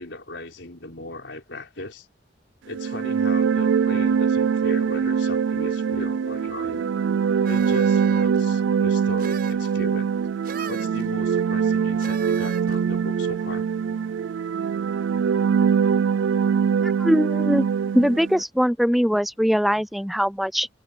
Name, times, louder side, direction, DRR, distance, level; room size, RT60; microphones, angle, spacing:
voice 1, 0.0-2.1 2.6-6.9 7.4-10.1 10.6-13.6, left 2 dB, 75° left, 4.6 m, -38 dB
sound 1, 2.7-18.4, right 6 dB, 90° right, 0.3 m, -23 dB
sound 2, 7.4-8.4 9.2-9.7 10.4-11.0 12.0-12.8, right 5 dB, 55° right, 6.0 m, -37 dB
voice 2, 16.8-17.7 17.9-20.7, equal, ahead, 0.4 m, -21 dB
head